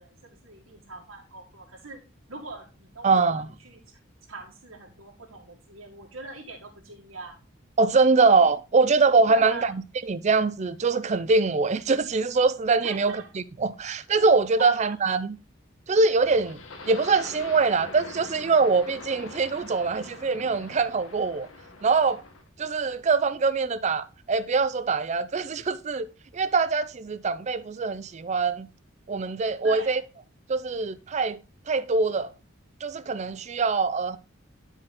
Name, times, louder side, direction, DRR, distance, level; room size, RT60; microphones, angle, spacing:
voice 1, 0.0-2.0 2.3-3.8 4.3-7.4 9.3-9.7 12.8-13.3 14.6-14.7 29.6-30.0, right 3 dB, 85° right, 1.8 m, -42 dB
voice 2, 3.0-3.5 7.8-13.2 13.6-15.4 15.9-16.6 16.9-21.5 21.8-22.2 22.6-26.1 26.3-28.7 29.1-30.0 30.5-31.4 31.7-32.3 32.8-34.2, right 4 dB, 35° right, 0.4 m, -23 dB
sound 1, 16.2-22.5, left 2 dB, 80° left, 1.3 m, -43 dB
9.7 x 4.5 x 3.7 m
head